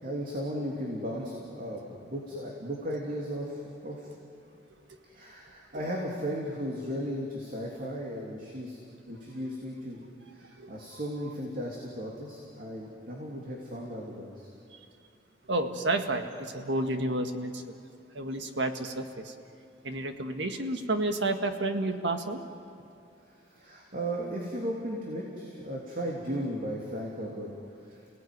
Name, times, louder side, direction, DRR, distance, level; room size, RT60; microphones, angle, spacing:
voice 1, 0.0-4.1 5.0-8.8 9.1-10.0 10.3-14.5 23.3-27.5 27.8-28.0, equal, 50° right, -2 dB, 3.2 m, -36 dB
voice 2, 15.5-17.8 18.1-19.3 19.8-22.4, right 2 dB, 70° right, 6 dB, 1.8 m, -30 dB
29.5 x 18.5 x 9.5 m, 2.5 s
head